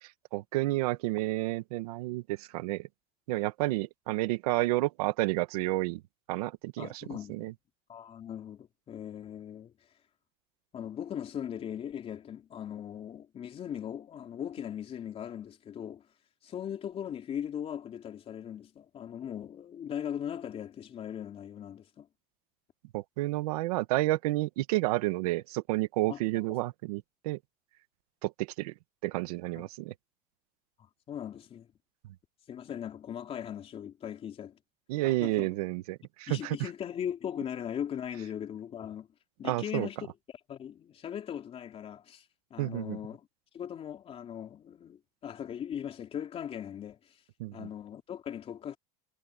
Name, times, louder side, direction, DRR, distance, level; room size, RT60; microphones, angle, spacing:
voice 1, 0.0-2.9 3.3-6.0 6.3-7.5 22.9-27.4 28.2-28.7 29.0-29.9 34.9-36.6 39.4-39.9 42.6-43.0 47.4-47.7, right 18 dB, 90° right, 1.6 m, -30 dB
voice 2, 6.8-7.5 7.9-9.9 10.7-16.0 16.4-22.1 26.1-26.2 29.5-29.6 30.8-31.7 32.5-34.6 35.0-35.5 36.3-39.1 39.4-40.1 40.5-43.3 43.5-47.2 47.5-48.8, left 9 dB, 30° left, 3.4 m, -39 dB
supercardioid pair, 140°, 19 cm